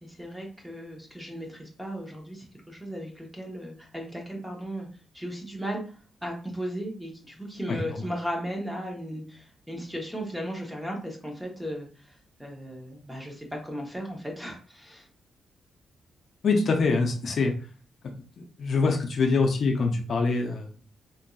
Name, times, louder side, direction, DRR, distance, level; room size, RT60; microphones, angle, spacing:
voice 1, 0.0-4.9 5.1-5.8 6.2-12.1 12.4-15.1, equal, 5° right, 0 dB, 0.7 m, -36 dB
voice 2, 16.4-17.5 18.0-20.8, left 4 dB, 50° left, 2 dB, 0.5 m, -25 dB
3.8 x 2.6 x 2.2 m, 0.39 s
wide cardioid pair, 150°, 0 cm